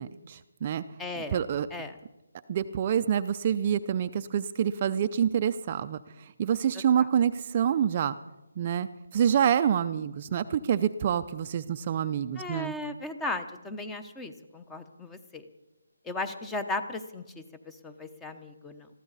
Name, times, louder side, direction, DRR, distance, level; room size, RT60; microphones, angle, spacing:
voice 1, 0.0-0.8 1.2-1.7 2.5-8.2 8.6-12.7, right 9 dB, 30° right, 9 dB, 0.5 m, -27 dB
voice 2, 1.0-1.4 1.7-1.9 12.4-15.5 16.0-18.9, left 2 dB, 5° left, 8 dB, 0.9 m, -36 dB
21.0 x 15.0 x 4.1 m, 1.0 s
figure-of-eight pair, 160°, 0 cm